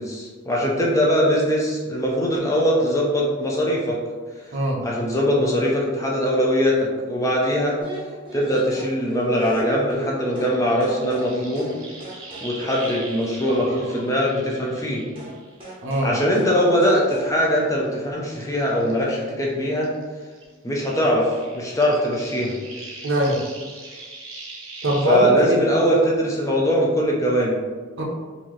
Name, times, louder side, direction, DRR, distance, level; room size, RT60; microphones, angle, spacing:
voice 1, 0.0-4.0 4.4-4.5 4.8-7.8 8.3-11.8 12.4-15.0 16.0-19.9 20.6-22.6 25.1-27.6, equal, 15° left, -3 dB, 0.5 m, -21 dB
voice 2, 4.5-4.8 15.8-16.1 23.0-23.4 24.8-25.6 28.0-28.1, equal, 65° right, -1 dB, 0.7 m, -21 dB
sound 1, 7.8-10.6 10.8-11.3 11.6-11.8 12.0-14.1 15.2-15.4 15.6-16.1 16.4-16.6 16.8-17.3, right 1 dB, 25° right, 0.7 m, -36 dB
sound 2, 10.3-15.8 16.2-19.5 19.8-25.2, right 2 dB, 90° right, 1.0 m, -41 dB
3.9 x 2.7 x 3.1 m, 1.4 s
head